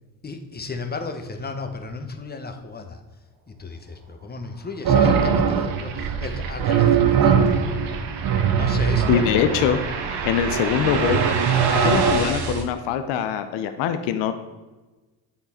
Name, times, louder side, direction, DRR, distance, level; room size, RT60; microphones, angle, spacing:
voice 1, 0.2-3.0 3.5-7.6 8.6-9.7, left 3 dB, 20° left, 6 dB, 0.9 m, -34 dB
sound 1, 4.8-12.6, right 4 dB, 75° right, 1.6 m, -32 dB
sound 2, 4.9-12.6, right 6 dB, 50° right, 0.8 m, -21 dB
voice 2, 9.1-9.8 10.2-11.2 11.7-14.3, left 8 dB, 75° left, 9 dB, 0.6 m, -23 dB
8.3 x 3.8 x 4.2 m, 1.2 s
supercardioid pair, 65°, 43 cm